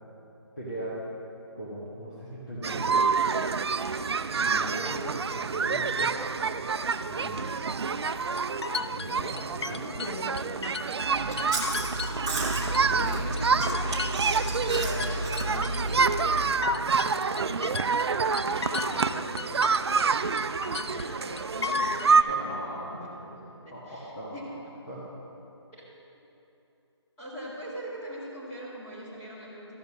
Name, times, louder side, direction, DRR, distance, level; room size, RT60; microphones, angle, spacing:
voice 1, 0.6-1.0 1.6-3.2 4.4-6.2 7.1-7.9 8.9-10.6 12.8-13.4 22.3-23.0 23.7-24.5 24.9-25.1, equal, 40° left, -8 dB, 1.7 m, -39 dB
sound 1, 2.6-22.2, right 5 dB, 65° right, 0.4 m, -28 dB
sound 2, 8.0-11.1 11.4-13.1 13.4-20.1 20.4-22.1, left 5 dB, 65° left, 0.5 m, -35 dB
Chewing mastication, 11.0-16.3, right 1 dB, 10° right, 0.5 m, -32 dB
voice 2, 12.9-14.3 14.7-17.7 18.1-22.4 22.7-23.4 23.6-24.6 25.8-25.9 27.2-29.8, equal, 10° left, -11 dB, 2.0 m, -42 dB
13.5 x 5.3 x 6.3 m, 2.9 s
figure-of-eight pair, 170°, 15 cm